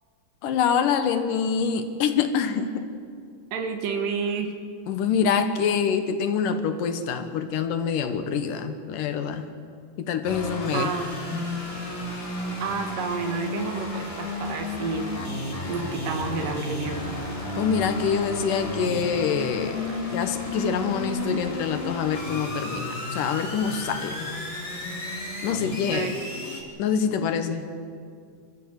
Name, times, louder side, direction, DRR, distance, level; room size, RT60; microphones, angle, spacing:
voice 1, 0.4-2.9 4.9-9.5 10.0-10.9 11.3-11.5 17.6-19.8 20.1-24.3 25.4-26.1 26.8-27.7, left 6 dB, 75° left, 8 dB, 2.7 m, -26 dB
voice 2, 3.5-4.5 10.7-11.1 12.6-15.1 15.7-17.1 25.9-26.2, right 5 dB, 75° right, 5 dB, 3.2 m, -30 dB
sound 1, 10.2-26.6, left 2 dB, 15° left, 2.9 m, -33 dB
26.5 x 14.5 x 8.1 m, 2.2 s
omnidirectional pair, 4.0 m